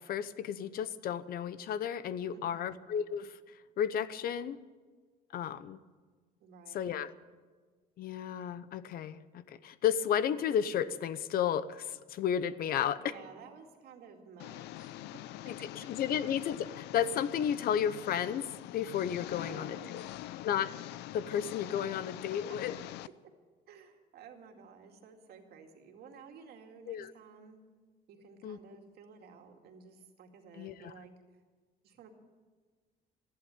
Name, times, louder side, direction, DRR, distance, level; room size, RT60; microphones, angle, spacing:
voice 1, 0.0-3.4 3.8-4.6 5.3-5.8 6.7-7.1 8.0-13.0 15.5-20.0 20.4-20.7 21.1-22.7 26.9-27.1 28.4-28.6 30.6-30.9, left 9 dB, 60° left, 16 dB, 0.8 m, -33 dB
voice 2, 2.3-2.7 6.4-6.9 13.0-16.2 19.3-20.0 22.0-22.4 23.7-27.6 28.1-31.4 31.8-32.1, right 5 dB, 70° right, 4 dB, 2.3 m, -54 dB
Engine, 14.4-23.1, left 15 dB, 85° left, 0.5 m, -44 dB
14.0 x 11.5 x 8.9 m, 1.4 s
cardioid pair, 110°, 17 cm